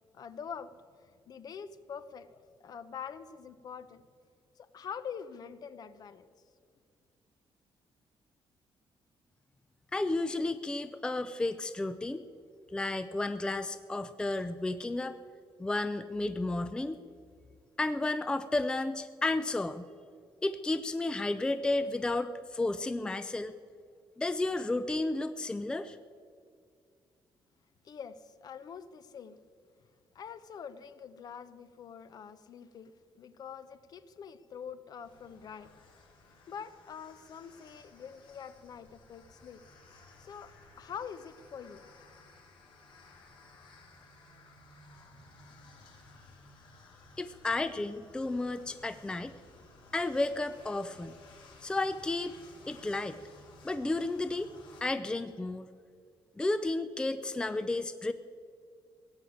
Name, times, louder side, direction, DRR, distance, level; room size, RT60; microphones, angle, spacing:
voice 1, 0.1-0.7 1.0-4.1 4.6-6.3 27.8-29.4 30.1-35.7 36.5-39.6 40.2-41.9, left 7 dB, 45° left, 13 dB, 0.7 m, -45 dB
voice 2, 9.9-12.2 12.7-15.2 15.6-17.0 17.8-19.9 20.4-23.5 24.2-26.0 47.2-49.3 49.9-51.1 51.6-52.3 52.7-53.2 53.6-54.5 54.8-55.7 56.4-58.1, left 2 dB, 10° left, 11 dB, 0.4 m, -32 dB
sound 1, 35.0-54.8, left 3 dB, 65° left, 3.3 m, -57 dB
17.0 x 7.9 x 8.7 m, 2.3 s
cardioid pair, 150°, 9 cm